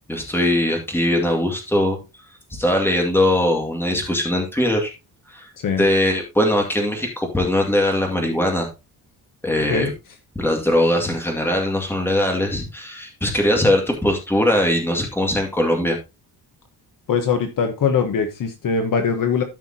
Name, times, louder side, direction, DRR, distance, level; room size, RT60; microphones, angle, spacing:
voice 1, 0.1-2.0 2.5-4.9 5.3-5.5 5.8-8.7 9.4-9.9 10.4-16.0, left 1 dB, 5° left, 2 dB, 2.2 m, -20 dB
voice 2, 17.1-19.4, left 6 dB, 50° left, 7 dB, 1.2 m, -21 dB
13.5 x 5.7 x 2.8 m, 0.25 s
cardioid pair, 170°, 40 cm